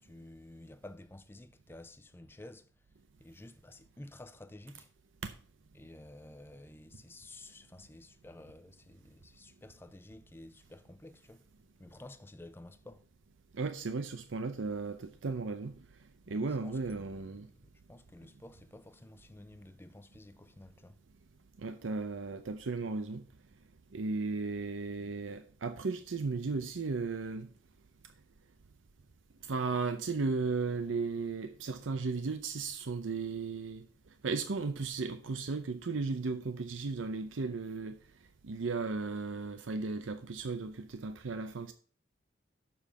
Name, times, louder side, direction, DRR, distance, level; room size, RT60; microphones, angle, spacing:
voice 1, 0.0-2.7 3.2-4.9 5.7-11.4 11.8-13.0 16.3-17.6 17.9-21.0, left 1 dB, 10° left, 0.5 m, -52 dB
voice 2, 13.5-15.8 16.3-17.5 21.6-23.2 23.9-27.5 29.4-33.8 34.2-38.0 38.4-41.7, right 4 dB, 90° right, 0.6 m, -35 dB
7.0 x 5.2 x 7.1 m
head